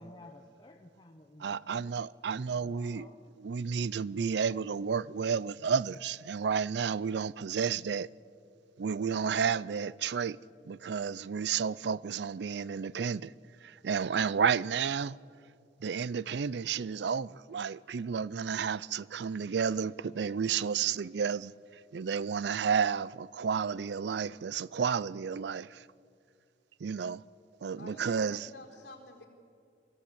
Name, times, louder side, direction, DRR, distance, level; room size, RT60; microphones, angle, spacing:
voice 1, 0.0-1.9 2.5-3.2, left 1 dB, 25° left, 0.9 m, -54 dB
voice 2, 1.4-3.1 3.4-8.1 8.8-10.4 10.7-13.3 13.6-15.2 15.8-21.5 21.9-25.9 26.8-27.2 27.6-28.4, right 6 dB, 70° right, 0.4 m, -31 dB
voice 3, 27.8-29.3, left 1 dB, 60° left, 4.5 m, -49 dB
23.5 x 14.5 x 8.7 m
head